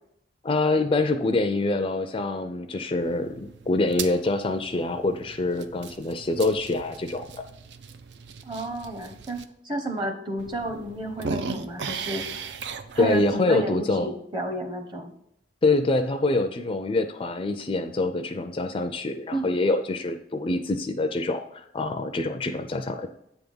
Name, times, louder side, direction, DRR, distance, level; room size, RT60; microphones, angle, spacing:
voice 1, 0.4-7.3 13.0-14.1 15.6-23.1, left 2 dB, 30° left, 8 dB, 0.4 m, -25 dB
sound 1, 3.0-9.4 10.0-10.1 10.4-13.4, right 5 dB, 75° right, 0.5 m, -38 dB
voice 2, 8.4-9.4 9.6-12.2 12.9-15.1 19.3-19.5, right 1 dB, 25° right, 5 dB, 0.9 m, -31 dB
8.2 x 3.5 x 5.4 m, 0.77 s
head